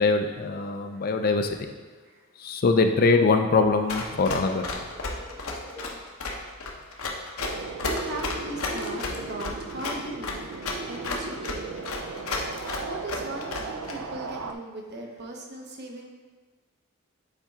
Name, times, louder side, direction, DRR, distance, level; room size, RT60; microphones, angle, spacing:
voice 1, 0.0-1.6 2.4-4.6, left 3 dB, 45° left, 6 dB, 0.4 m, -22 dB
Run, 3.9-13.9, left 3 dB, 75° left, 0.9 m, -32 dB
sound 1, 4.7-5.9 7.4-7.5 8.2-9.5, right 1 dB, 30° right, 1.1 m, -43 dB
sound 2, 7.4-14.5, right 4 dB, 65° right, 0.4 m, -37 dB
voice 2, 7.8-11.8 12.8-16.1, right 2 dB, 50° right, 1 dB, 0.8 m, -39 dB
7.3 x 4.3 x 3.6 m, 1.4 s
head